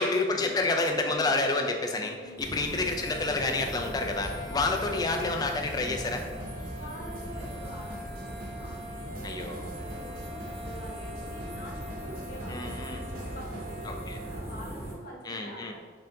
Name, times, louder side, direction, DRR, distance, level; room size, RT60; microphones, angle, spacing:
voice 1, 0.0-6.2 9.2-9.7 12.5-13.0 13.9-14.2 15.2-15.7, left 3 dB, 20° left, 3 dB, 0.3 m, -29 dB
voice 2, 1.9-2.5 4.5-4.9 6.7-8.8 9.0-15.7, equal, 50° left, -2 dB, 0.9 m, -46 dB
sound 1, 2.4-14.9, equal, 15° right, 0.8 m, -39 dB
sound 2, 2.7-14.5, equal, 70° right, 1.1 m, -44 dB
sound 3, 5.6-13.8, right 1 dB, 45° right, 0.5 m, -48 dB
4.3 x 3.7 x 2.7 m, 1.5 s
head